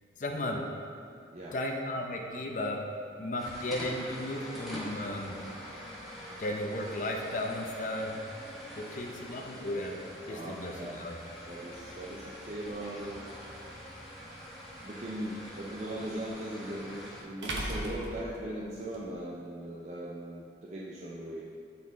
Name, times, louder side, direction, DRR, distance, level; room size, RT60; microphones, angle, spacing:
voice 1, 0.2-0.6 1.5-2.9 3.2-5.4 6.4-8.1 8.8-10.0 10.3-11.2, left 1 dB, 45° left, 2 dB, 0.7 m, -35 dB
sound 1, 3.4-17.2, equal, ahead, 1.5 m, -44 dB
voice 2, 10.3-10.9 11.5-13.2 14.8-21.5, right 1 dB, 40° right, -5 dB, 0.6 m, -39 dB
sound 2, 13.6-13.7 16.3-16.4 17.4-19.0, right 1 dB, 90° right, 0.9 m, -37 dB
8.5 x 4.2 x 4.0 m, 2.4 s
head